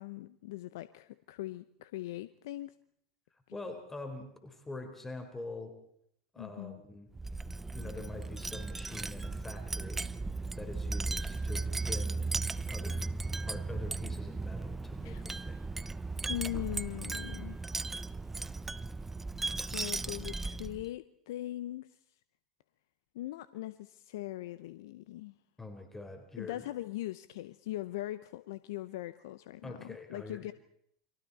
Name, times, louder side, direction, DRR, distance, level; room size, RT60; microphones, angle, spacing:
voice 1, 0.0-2.8 6.4-6.8 15.0-15.2 16.3-17.6 19.6-22.0 23.1-25.3 26.4-30.5, left 15 dB, 70° left, 14 dB, 0.8 m, -40 dB
voice 2, 3.5-5.7 6.3-7.1 7.7-10.1 10.6-12.4 12.7-13.0 13.5-15.7 25.6-26.7 29.6-30.4, left 2 dB, 15° left, 5 dB, 4.3 m, -44 dB
Wind chime, 7.1-20.9, right 3 dB, 10° right, 0.8 m, -36 dB
30.0 x 23.5 x 4.2 m, 0.69 s
hypercardioid pair, 90°, 2 cm